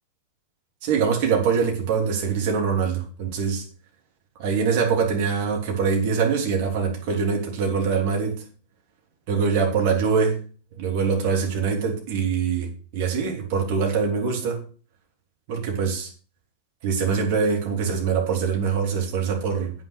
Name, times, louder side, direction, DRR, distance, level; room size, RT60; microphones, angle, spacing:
voice 1, 0.8-3.6 4.4-8.4 9.3-10.4 10.7-14.6 15.5-16.1 16.8-19.7, right 6 dB, 45° right, 3.3 m, -23 dB
9.0 x 6.3 x 6.6 m
figure-of-eight pair, 90°, 0 cm